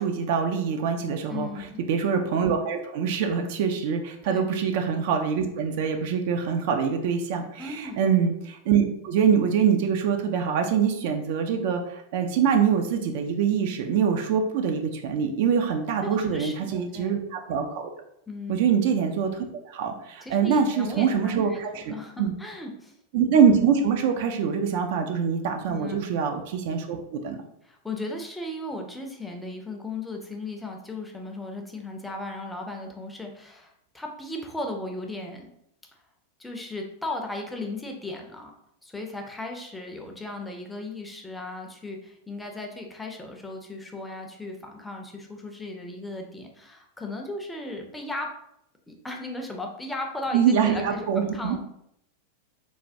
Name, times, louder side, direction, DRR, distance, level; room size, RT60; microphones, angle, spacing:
voice 1, 0.0-17.9 18.5-22.3 23.1-27.4 50.3-51.6, right 7 dB, 50° right, 5 dB, 0.3 m, -24 dB
voice 2, 1.3-1.8 4.2-4.5 7.6-8.0 16.0-17.1 18.3-18.6 20.2-22.9 25.7-26.0 27.6-35.5 36.4-38.5 38.8-48.3 48.9-51.6, left 2 dB, 5° left, 2 dB, 0.5 m, -36 dB
3.2 x 2.2 x 2.6 m, 0.75 s
figure-of-eight pair, 90°, 0 cm